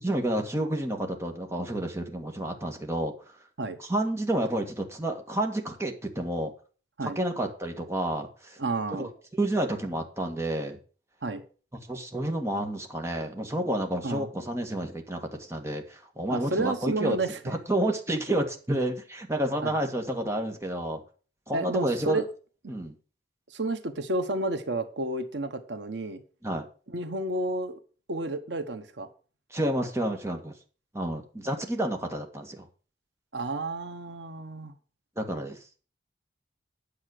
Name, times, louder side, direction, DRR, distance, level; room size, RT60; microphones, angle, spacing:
voice 1, 0.0-3.4 3.8-6.5 7.0-8.6 9.0-9.1 9.4-10.8 11.9-17.2 17.4-21.0 21.5-22.2 22.7-22.9 26.4-26.6 29.5-30.5 30.9-32.7 35.1-35.6, right 1 dB, 15° right, 1.8 m, -30 dB
voice 2, 8.6-9.1 11.2-11.4 14.0-14.3 16.3-17.5 19.6-19.7 21.5-22.2 22.6-22.7 23.5-26.2 26.9-27.8 28.1-29.1 33.3-34.7, right 2 dB, 90° right, 1.3 m, -31 dB
9.7 x 7.3 x 6.5 m
head